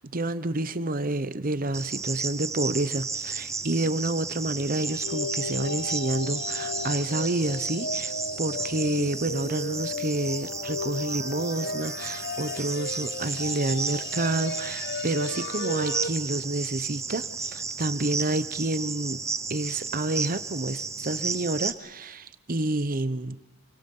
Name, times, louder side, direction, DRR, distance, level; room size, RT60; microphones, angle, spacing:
voice 1, 0.1-19.2 19.5-23.4, right 2 dB, 40° right, 14 dB, 1.0 m, -29 dB
Cricket, 1.7-21.7, right 4 dB, 15° right, 0.9 m, -33 dB
sound 1, 4.8-16.1, left 3 dB, 50° left, 1.2 m, -35 dB
28.5 x 24.5 x 5.5 m, 1.1 s
head